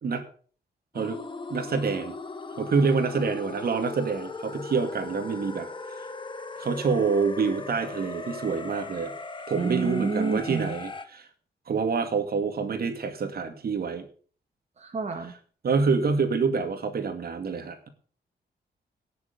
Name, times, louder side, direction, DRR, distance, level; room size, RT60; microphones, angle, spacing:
sound 1, 0.9-11.1, left 3 dB, 30° left, 1.4 m, -38 dB
voice 1, 1.5-2.2 2.5-6.1 6.6-9.1 9.5-11.3 11.7-14.1 15.6-17.8, right 5 dB, 60° right, 7 dB, 2.4 m, -27 dB
voice 2, 9.6-10.7 14.8-15.4, right 4 dB, 40° right, 3 dB, 1.8 m, -29 dB
17.5 x 7.1 x 6.8 m, 0.43 s
wide cardioid pair, 130°, 18 cm